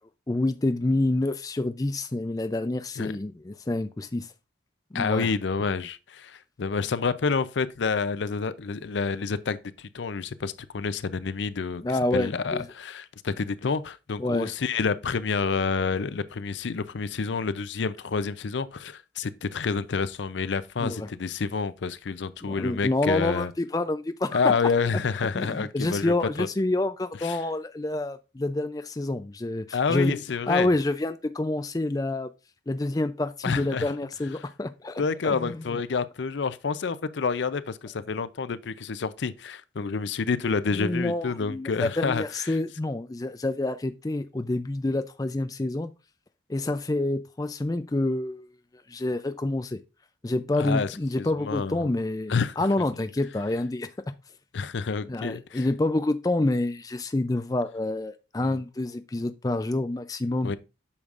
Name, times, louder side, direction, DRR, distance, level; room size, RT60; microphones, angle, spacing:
voice 1, 0.3-4.3 4.9-5.3 11.8-12.6 14.2-14.5 20.8-21.1 22.4-24.5 25.3-30.2 30.5-32.3 32.7-35.6 40.7-45.9 46.5-48.5 48.9-49.8 50.2-53.9 55.1-60.5, left 2 dB, 20° left, 0.4 m, -28 dB
voice 2, 4.9-11.8 12.1-23.5 24.3-26.5 27.2-27.4 29.7-30.7 33.4-33.9 35.0-42.6 50.5-51.9 52.3-52.6 54.5-55.7 58.4-58.6 60.4-60.6, left 5 dB, 80° left, 0.5 m, -28 dB
8.6 x 6.3 x 2.5 m
head